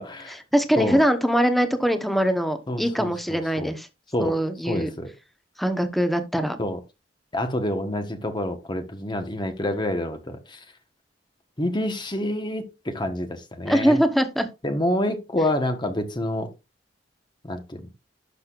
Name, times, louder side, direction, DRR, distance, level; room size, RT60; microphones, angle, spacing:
voice 1, 0.0-0.4 0.8-1.0 2.7-3.7 4.1-4.4 4.6-5.1 6.6-6.8 7.3-10.6 11.6-14.0 14.6-16.5 17.4-17.9, left 1 dB, 25° left, 1.2 m, -27 dB
voice 2, 0.5-3.9 4.2-4.9 5.6-6.6 13.6-14.5, equal, ahead, 1.0 m, -22 dB
11.5 x 6.5 x 2.5 m
head